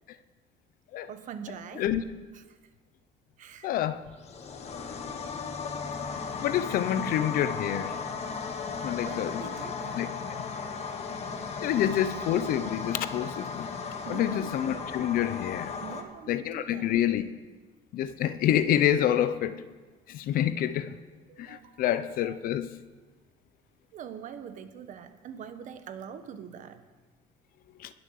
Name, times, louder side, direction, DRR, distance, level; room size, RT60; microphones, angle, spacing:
voice 1, 1.1-1.9 2.3-2.6 3.4-3.7 9.0-10.1 14.0-14.5 15.8-17.0 21.3-22.4 23.9-26.8, right 8 dB, 55° right, 9 dB, 1.3 m, -44 dB
voice 2, 3.6-4.0 6.4-7.9 8.8-9.5 10.0-10.1 11.6-13.7 14.1-15.7 16.3-17.2 17.9-19.6 20.1-21.0 21.4-22.7 27.8-27.9, left 11 dB, 65° left, 13 dB, 0.8 m, -27 dB
sound 1, 4.2-16.0, left 5 dB, 45° left, 1.6 m, -36 dB
20.5 x 7.3 x 6.7 m, 1.3 s
cardioid pair, 125°, 16 cm